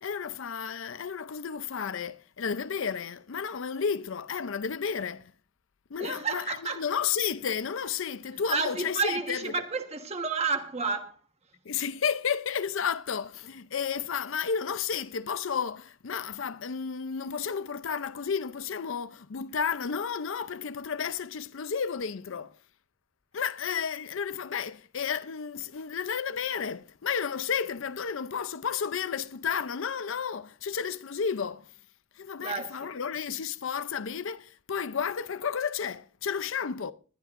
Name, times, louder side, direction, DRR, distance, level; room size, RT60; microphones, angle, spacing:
voice 1, 0.0-5.3 5.9-9.5 11.7-22.5 23.3-31.7 32.2-36.9, left 6 dB, 65° left, 0.5 m, -32 dB
voice 2, 6.0-6.8 8.5-11.1 32.4-32.9, right 4 dB, 30° right, 1.3 m, -31 dB
20.5 x 12.0 x 2.5 m
head